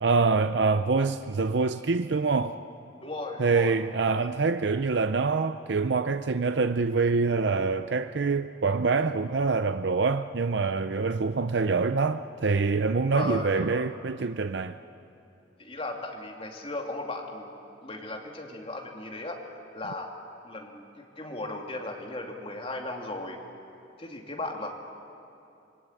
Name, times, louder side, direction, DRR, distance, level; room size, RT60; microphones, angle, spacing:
voice 1, 0.0-2.6 3.4-14.8, right 4 dB, 65° right, 0.6 m, -25 dB
voice 2, 3.0-3.8 4.2-4.3 8.9-9.1 13.1-13.9 15.6-17.5 17.8-20.1 20.4-23.4 24.0-24.7, left 2 dB, 30° left, 2.7 m, -36 dB
27.0 x 21.0 x 9.1 m
head